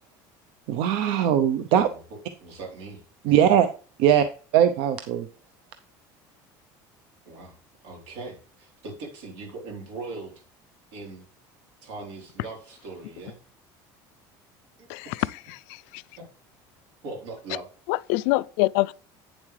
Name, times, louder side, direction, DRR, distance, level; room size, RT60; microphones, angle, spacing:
voice 1, 0.7-1.9 3.2-3.7 4.0-4.3 4.5-5.3, right 9 dB, 65° right, 0.6 m, -20 dB
voice 2, 2.4-3.4 7.3-7.6 7.8-10.3 10.9-11.3 11.8-13.4 14.8-14.9 15.2-15.3 16.2-16.3 17.0-17.7, right 3 dB, 85° right, 3.7 m, -40 dB
voice 3, 14.9-16.0 17.9-19.0, left 20 dB, 80° left, 0.4 m, -26 dB
9.1 x 7.2 x 3.2 m
cardioid pair, 170°, 9 cm